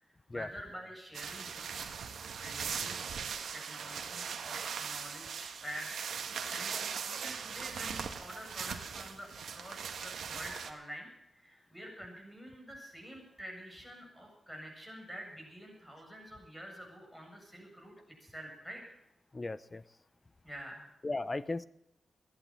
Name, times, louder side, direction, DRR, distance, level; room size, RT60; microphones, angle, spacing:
voice 1, 0.0-2.0 2.4-3.0 3.5-6.0 6.5-11.1 11.3-17.9 18.2-18.8 20.4-20.9, equal, 5° left, 1 dB, 7.6 m, -47 dB
sound 1, 1.1-10.7, right 6 dB, 85° right, 1.6 m, -40 dB
voice 2, 19.3-19.8 21.0-21.6, left 2 dB, 30° left, 16 dB, 0.7 m, -36 dB
15.5 x 11.0 x 7.6 m, 0.78 s
cardioid pair, 70°, 0 cm